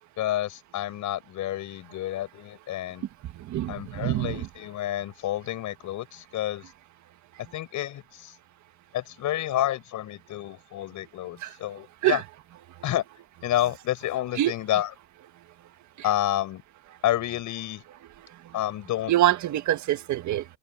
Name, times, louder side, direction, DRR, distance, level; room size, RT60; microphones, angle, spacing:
voice 1, 0.2-3.0 3.7-6.7 7.5-8.3 8.9-12.2 12.8-13.0 13.4-14.9 16.0-16.6 17.0-17.8 18.5-19.1, left 13 dB, 75° left, 6.4 m, -29 dB
voice 2, 3.5-4.5 11.4-11.5 12.0-12.2 14.4-14.5 19.1-20.4, right 14 dB, 70° right, 1.6 m, -25 dB
cardioid pair, 175°, 30 cm